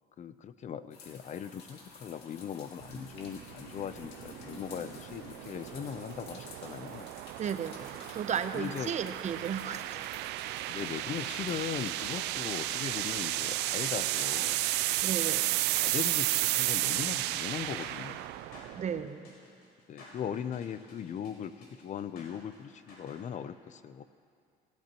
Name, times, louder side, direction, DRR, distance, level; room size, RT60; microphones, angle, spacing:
voice 1, 0.2-7.1 8.5-8.9 10.6-14.6 15.2-18.2 19.9-24.0, left 8 dB, 45° left, 13 dB, 0.6 m, -39 dB
sound 1, 0.9-14.3, left 4 dB, 90° left, 2.1 m, -52 dB
sound 2, 2.8-19.1, right 16 dB, 90° right, 0.4 m, -33 dB
voice 2, 7.4-10.1 15.0-15.4 18.8-19.3, right 7 dB, 45° right, 10 dB, 0.7 m, -34 dB
sound 3, 11.6-23.2, left 1 dB, 70° left, 4.7 m, -54 dB
25.0 x 13.5 x 3.0 m, 2.3 s
cardioid pair, 110°, 17 cm